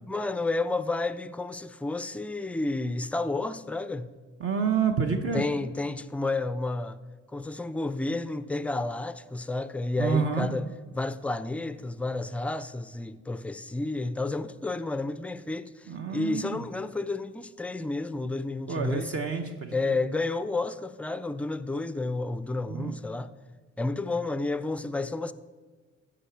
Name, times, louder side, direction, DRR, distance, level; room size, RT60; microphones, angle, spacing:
voice 1, 0.1-4.1 5.3-7.0 7.3-10.7 10.9-19.1 19.7-23.3 23.8-25.3, left 2 dB, 5° left, 0.3 m, -31 dB
voice 2, 4.4-5.4 10.0-10.5 15.9-16.6 18.7-20.0 22.7-23.0, right 6 dB, 50° right, 0.8 m, -28 dB
14.0 x 5.0 x 4.5 m
cardioid pair, 90°, 30 cm